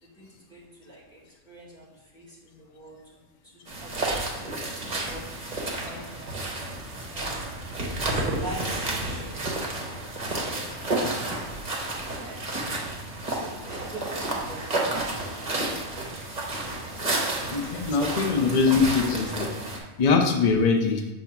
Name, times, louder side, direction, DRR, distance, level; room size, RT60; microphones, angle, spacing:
voice 1, 0.0-3.1 3.4-5.3 5.8-6.3 6.9-10.0 10.7-11.4 12.0-12.9 13.3-17.8, right 1 dB, 5° left, -5 dB, 1.9 m, -45 dB
sound 1, 3.7-19.8, right 2 dB, 35° right, 1.1 m, -31 dB
voice 2, 17.5-19.5 20.0-21.0, left 4 dB, 45° left, 3 dB, 0.6 m, -22 dB
7.1 x 2.8 x 5.7 m, 1.1 s
omnidirectional pair, 1.3 m